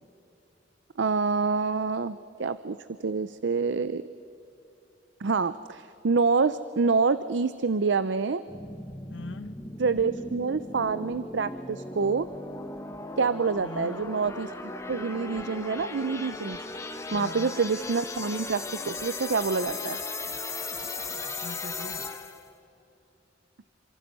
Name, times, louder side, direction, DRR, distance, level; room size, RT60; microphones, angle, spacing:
voice 1, 1.0-4.0 5.2-8.4 9.8-12.3 13.2-16.6 17.1-20.0, right 4 dB, 75° right, 0.6 m, -27 dB
sound 1, 8.5-22.5, left 3 dB, 15° left, 1.5 m, -37 dB
voice 2, 9.1-9.6 13.6-14.0 17.1-17.5 21.2-22.1, left 3 dB, 90° left, 1.2 m, -40 dB
28.0 x 26.0 x 5.5 m
head